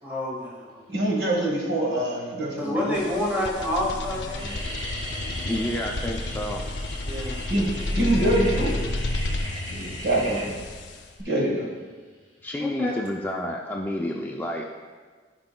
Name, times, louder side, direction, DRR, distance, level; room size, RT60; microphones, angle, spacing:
voice 1, 0.0-0.8 2.6-4.5 7.1-7.4 12.6-13.0, left 1 dB, 10° right, -4 dB, 1.3 m, -28 dB
voice 2, 0.9-3.0 7.5-8.7 9.7-10.6 11.2-11.7, right 1 dB, 75° right, -1 dB, 1.5 m, -25 dB
sound 1, 1.9-2.3 3.0-3.1 3.3-3.7 4.0-12.9, equal, 30° right, 1.4 m, -38 dB
sound 2, 2.9-11.2, left 2 dB, 75° left, 0.6 m, -31 dB
voice 3, 5.5-6.6 12.4-14.7, left 1 dB, 10° left, -1 dB, 0.4 m, -30 dB
14.0 x 5.0 x 2.2 m, 1.5 s
head